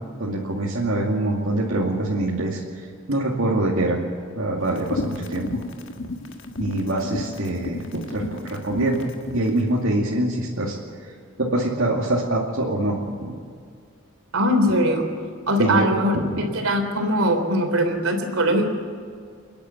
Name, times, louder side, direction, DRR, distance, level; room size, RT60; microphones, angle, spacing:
voice 1, 0.2-4.1 4.4-5.5 6.6-9.0 9.3-10.8 11.0-11.1 11.4-13.3 15.6-15.9 16.1-16.4, right 1 dB, 75° right, -4 dB, 2.4 m, -24 dB
sound 1, 4.7-9.5, left 2 dB, 65° left, 1.6 m, -32 dB
voice 2, 14.3-15.1 15.5-18.7, equal, 90° right, 4 dB, 3.4 m, -21 dB
29.5 x 10.5 x 8.4 m, 2.2 s
head